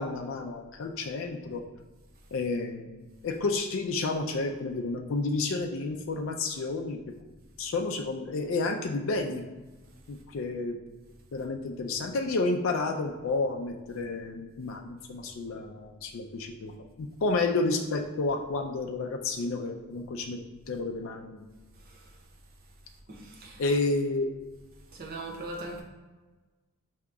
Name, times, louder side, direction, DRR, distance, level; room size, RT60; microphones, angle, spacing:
voice 1, 0.0-1.6 2.3-7.0 7.6-9.4 10.1-10.8 11.3-16.7 17.0-20.4 20.7-21.4 23.6-24.3, left 3 dB, 65° left, 2 dB, 0.4 m, -30 dB
voice 2, 23.1-23.6 24.9-25.8, right 2 dB, 45° right, -1 dB, 0.8 m, -40 dB
4.9 x 2.8 x 3.4 m, 1.2 s
head